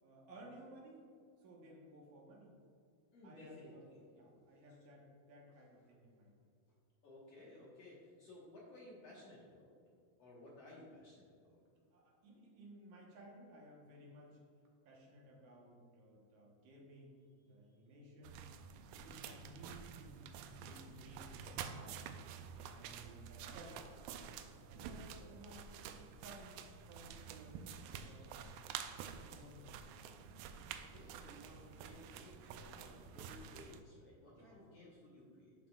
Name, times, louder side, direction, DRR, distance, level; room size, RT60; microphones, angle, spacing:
voice 1, 0.0-1.1 1.4-2.6 3.2-3.8 4.1-6.3 11.9-14.4 14.9-18.5 18.9-20.2 20.6-22.0 22.7-24.4 24.7-25.7 26.1-28.3 29.3-29.7 34.2-34.7, right 1 dB, 65° right, -2 dB, 2.2 m, -58 dB
voice 2, 3.1-4.0 4.3-4.4 7.0-9.7 10.2-11.6 30.7-35.5, left 2 dB, 55° left, -6 dB, 1.8 m, -57 dB
sound 1, 18.2-33.8, right 7 dB, 85° right, 2.0 m, -49 dB
13.0 x 5.9 x 2.4 m, 2.3 s
omnidirectional pair, 4.5 m